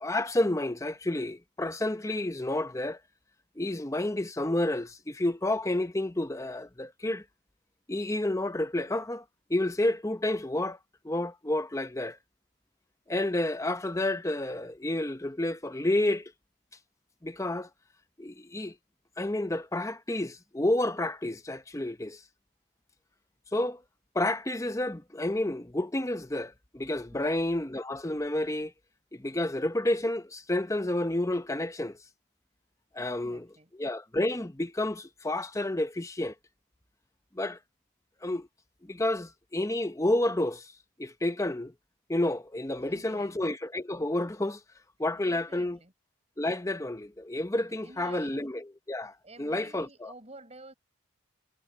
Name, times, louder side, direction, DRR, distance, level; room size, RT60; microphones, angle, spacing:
voice 1, 0.0-3.0 3.6-7.2 7.9-9.2 9.5-10.8 11.0-12.2 13.1-16.3 17.2-17.7 18.2-18.8 19.2-22.2 23.5-23.8 24.1-28.7 29.1-32.0 32.9-33.5 33.8-36.3 37.3-37.6 38.2-38.5 38.8-40.7 41.0-41.7 42.1-44.6 45.0-45.8 46.4-49.1 49.4-50.1, left 1 dB, 15° left, 0.8 m, -30 dB
voice 2, 33.0-33.7 42.8-43.4 45.1-45.9 47.7-48.4 49.2-50.7, right 2 dB, 30° right, 7.2 m, -51 dB
head